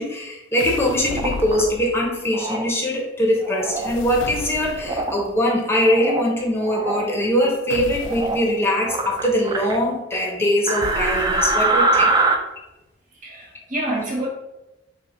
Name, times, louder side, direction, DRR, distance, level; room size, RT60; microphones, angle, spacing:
voice 1, 0.0-12.1, equal, 15° left, -1 dB, 0.8 m, -22 dB
sound 1, 0.6-2.2 3.6-5.2 7.7-8.5 10.8-11.9, left 4 dB, 75° left, 0.3 m, -34 dB
sound 2, 1.0-1.6 2.3-2.7 3.4-3.9 4.8-5.2 5.7-6.3 6.6-7.0 8.0-8.5 8.8-9.8 10.7-12.3, right 3 dB, 20° right, 0.4 m, -23 dB
voice 2, 13.1-14.3, right 1 dB, 45° right, -4 dB, 1.1 m, -27 dB
5.4 x 2.1 x 4.2 m, 1.0 s
head